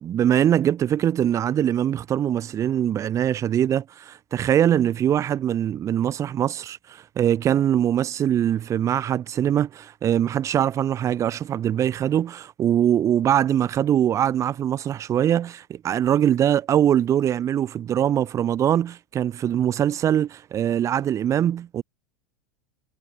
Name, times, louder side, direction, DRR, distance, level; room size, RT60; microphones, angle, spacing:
voice 1, 0.0-21.8, right 10 dB, 30° right, 0.9 m, -22 dB
supercardioid pair, 130°, 11 cm